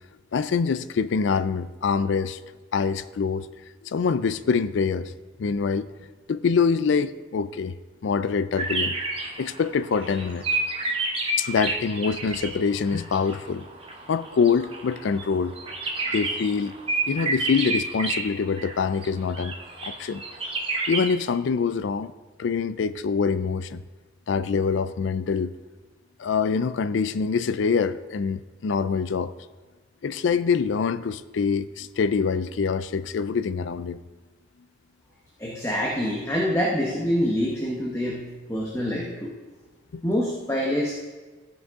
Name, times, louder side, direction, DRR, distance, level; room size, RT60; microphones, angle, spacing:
voice 1, 0.3-2.4 2.7-3.5 3.8-5.1 5.4-5.9 6.3-7.7 8.0-9.0 9.4-10.4 11.4-13.7 14.1-15.5 16.1-16.7 17.1-19.5 19.8-20.2 20.9-22.1 22.4-23.8 24.3-25.5 26.2-29.3 30.0-34.0 39.9-40.0, left 5 dB, 70° left, 14 dB, 0.4 m, -25 dB
sound 1, 8.6-12.6 12.9-18.3 18.6-19.1 19.3-21.1, right 2 dB, 30° right, 0.9 m, -30 dB
voice 2, 35.4-38.2 38.5-39.3 40.0-40.9, equal, 15° left, -3 dB, 1.0 m, -25 dB
13.5 x 6.1 x 3.6 m, 1.3 s
head